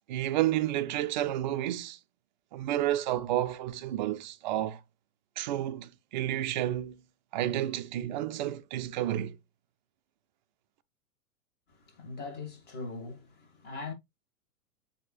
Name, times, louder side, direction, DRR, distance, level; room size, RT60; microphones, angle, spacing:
voice 1, 0.1-2.0 2.5-4.8 5.4-7.0 7.3-9.4, right 13 dB, 35° right, 0.4 m, -31 dB
voice 2, 11.7-13.9, left 3 dB, 20° left, 1.7 m, -41 dB
7.6 x 2.8 x 2.3 m
figure-of-eight pair, 105°, 44 cm